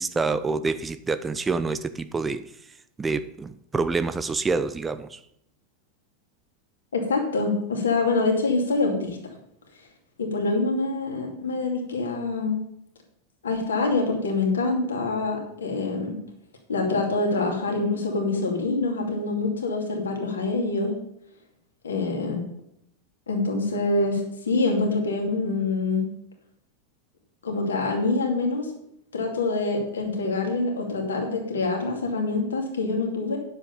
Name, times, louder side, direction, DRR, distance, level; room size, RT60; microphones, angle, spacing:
voice 1, 0.0-2.4 3.0-5.2, right 4 dB, 15° right, 12 dB, 0.5 m, -27 dB
voice 2, 6.9-9.2 10.2-12.6 13.4-16.2 16.7-20.9 21.8-22.4 23.3-26.1 27.4-28.7 29.1-33.4, left 3 dB, 70° left, 2 dB, 2.5 m, -25 dB
9.8 x 7.9 x 5.5 m, 0.75 s
figure-of-eight pair, 90°, 0 cm